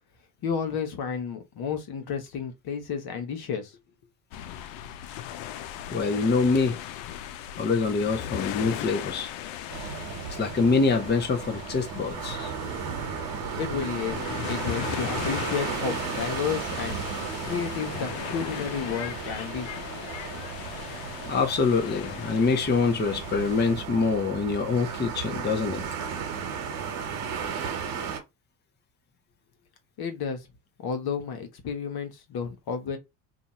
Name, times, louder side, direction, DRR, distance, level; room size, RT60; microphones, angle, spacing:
voice 1, 0.4-3.8 13.6-17.0 17.4-19.7 20.0-20.1 30.0-30.5 30.8-33.0, left 6 dB, 55° left, 1.1 m, -32 dB
sound 1, 4.3-23.8, left 11 dB, 80° left, 0.6 m, -38 dB
voice 2, 5.9-6.8 7.6-9.3 10.3-12.5 21.2-25.8, left 4 dB, 25° left, 0.8 m, -25 dB
sound 2, 9.7-28.2, right 7 dB, 75° right, 1.1 m, -35 dB
2.7 x 2.4 x 4.1 m
supercardioid pair, 90°, 44 cm